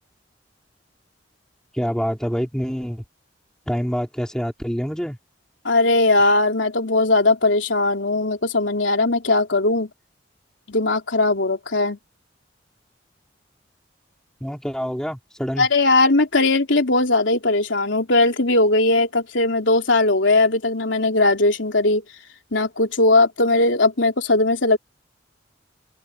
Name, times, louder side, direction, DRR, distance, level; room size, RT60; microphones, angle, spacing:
voice 1, 1.7-3.0 3.7-5.2 14.4-15.7, equal, 5° left, 3.9 m, -26 dB
voice 2, 5.7-9.9 10.7-12.0 15.6-22.0 22.5-24.8, left 2 dB, 85° left, 3.4 m, -19 dB
open air
head